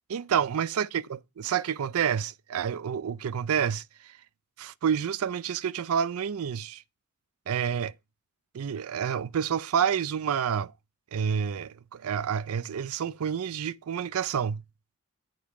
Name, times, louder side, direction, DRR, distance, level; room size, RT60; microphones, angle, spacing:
voice 1, 0.1-3.8 4.6-6.8 7.5-7.9 8.5-10.7 11.1-14.6, right 8 dB, 80° right, 0.4 m, -29 dB
10.0 x 5.3 x 4.6 m
head